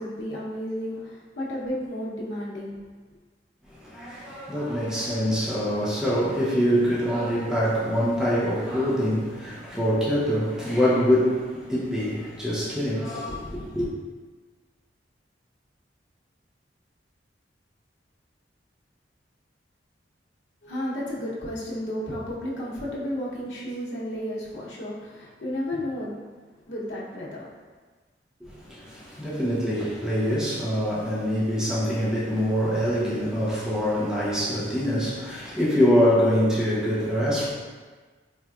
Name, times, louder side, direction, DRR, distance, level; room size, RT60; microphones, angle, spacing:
voice 1, 0.0-2.8 20.6-26.2 26.7-27.5, equal, 85° left, 0.8 m, -32 dB
voice 2, 3.7-13.9 28.4-37.5, equal, 5° right, 0.7 m, -24 dB
4.3 x 2.4 x 2.3 m
head